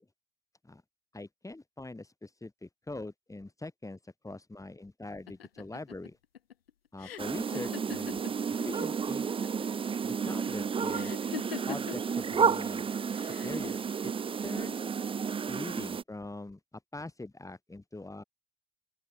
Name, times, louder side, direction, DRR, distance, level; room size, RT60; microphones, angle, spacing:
voice 1, 1.1-6.2 6.9-8.4 8.6-9.3 10.0-11.1 11.7-12.9 13.2-13.8 14.0-14.1 14.4-14.9 15.5-16.6 16.9-18.2, left 2 dB, 10° left, 6.5 m, -42 dB
sound 1, 5.3-8.9 9.1-9.8 10.9-12.1 13.1-13.7, left 9 dB, 85° left, 1.6 m, -42 dB
sound 2, 7.2-16.0, right 6 dB, 20° right, 0.6 m, -31 dB
open air
figure-of-eight pair, 65°, 29 cm